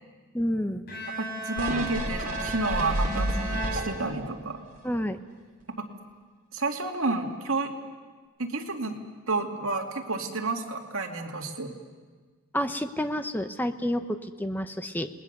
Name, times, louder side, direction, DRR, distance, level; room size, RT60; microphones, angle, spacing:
voice 1, 0.3-0.8 4.8-5.2 12.5-15.1, equal, 10° left, 8 dB, 0.9 m, -29 dB
Bowed string instrument, 0.9-4.6, right 1 dB, 45° left, 4.4 m, -36 dB
voice 2, 1.2-4.6 5.7-5.9 6.5-7.7 8.4-9.0 9.3-11.7, right 3 dB, 70° right, 2 dB, 2.5 m, -30 dB
sound 1, 1.6-4.3 4.8-4.9, right 1 dB, 40° right, 3.7 m, -30 dB
29.5 x 20.0 x 6.8 m, 1.4 s
head